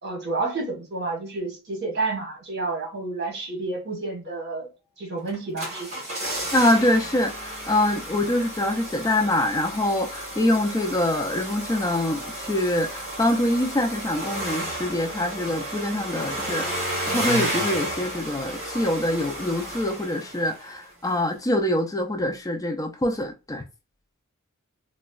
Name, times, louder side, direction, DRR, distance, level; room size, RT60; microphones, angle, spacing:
voice 1, 0.0-4.7 5.0-6.0, right 3 dB, 50° right, 1.2 m, -30 dB
sound 1, 5.3-20.8 21.0-21.1, right 1 dB, 30° right, 1.5 m, -32 dB
voice 2, 6.5-23.6, left 1 dB, 15° left, 0.4 m, -24 dB
4.0 x 2.1 x 2.3 m
head